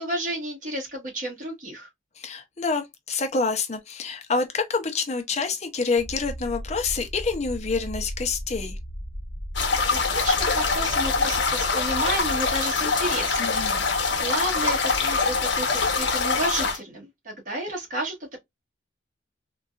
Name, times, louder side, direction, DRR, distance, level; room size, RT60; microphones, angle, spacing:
voice 1, 0.0-1.9 9.9-13.6 13.8-18.4, right 1 dB, 45° right, 1.4 m, -32 dB
voice 2, 2.2-8.8 13.4-13.9, left 4 dB, 35° left, 0.5 m, -27 dB
sound 1, 6.0-12.6, equal, 15° left, 1.0 m, -36 dB
sound 2, 9.5-16.8, left 4 dB, 80° left, 0.8 m, -24 dB
3.8 x 2.3 x 2.3 m
head